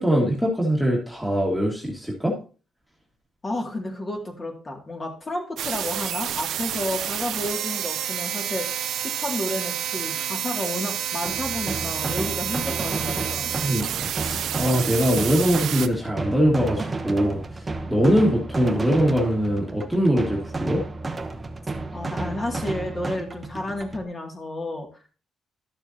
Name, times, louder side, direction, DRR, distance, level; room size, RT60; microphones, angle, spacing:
voice 1, 0.0-2.3 13.6-17.4 17.9-20.8, equal, ahead, -3 dB, 2.1 m, -22 dB
voice 2, 3.4-13.5 21.9-24.9, left 1 dB, 30° left, 2 dB, 2.5 m, -31 dB
sound 1, 5.6-15.9, right 10 dB, 75° right, 0.6 m, -29 dB
sound 2, 11.2-24.0, right 3 dB, 25° right, 1.0 m, -32 dB
12.0 x 6.8 x 2.9 m, 0.37 s
cardioid pair, 90°, 0 cm